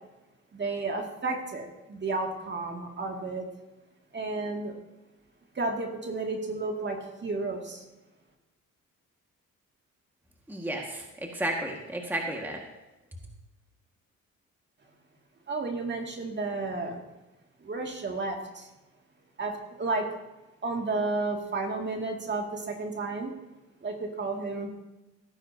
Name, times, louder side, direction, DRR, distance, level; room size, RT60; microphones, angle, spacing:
voice 1, 0.5-3.5 4.1-4.7 5.5-7.8 15.5-17.0 17.6-18.7 19.4-20.1 20.6-23.3 23.8-24.7, right 3 dB, 35° right, 2 dB, 2.2 m, -32 dB
voice 2, 10.5-12.6, right 1 dB, 5° right, 1 dB, 1.7 m, -33 dB
17.0 x 9.8 x 2.8 m, 1.0 s
cardioid pair, 90°, 30 cm